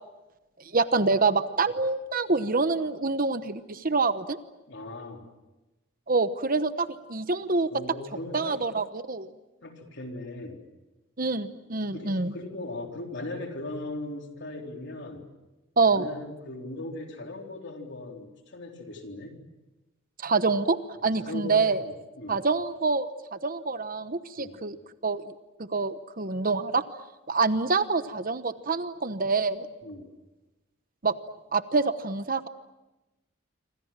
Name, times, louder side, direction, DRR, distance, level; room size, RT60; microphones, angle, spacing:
voice 1, 0.7-4.4 6.1-7.7 8.3-9.3 11.2-12.3 15.8-16.1 20.2-21.8 22.3-24.8 25.0-25.2 25.7-26.8 27.3-29.7 31.0-31.1 31.5-32.5, right 4 dB, 40° right, 11 dB, 1.0 m, -26 dB
voice 2, 4.7-5.3 7.7-8.6 9.6-10.6 11.9-15.2 15.9-19.4 21.0-22.4 24.4-24.6 29.8-30.1, left 1 dB, 55° left, 3 dB, 3.9 m, -39 dB
27.5 x 25.5 x 7.5 m, 1.1 s
head